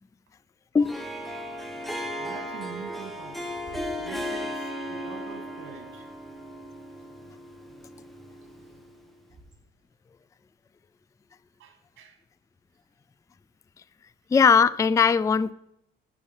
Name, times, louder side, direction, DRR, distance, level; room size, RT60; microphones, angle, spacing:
Harp, 0.8-9.1, equal, ahead, 1.5 m, -36 dB
voice 1, 2.0-3.6 4.0-6.1 11.6-12.2, right 5 dB, 80° right, 2.0 m, -44 dB
Bird / Wind, 3.3-9.9, right 3 dB, 40° right, 4.0 m, -56 dB
voice 2, 14.3-15.5, left 6 dB, 15° left, 0.3 m, -19 dB
11.0 x 6.0 x 5.5 m
cardioid pair, 90°, 20 cm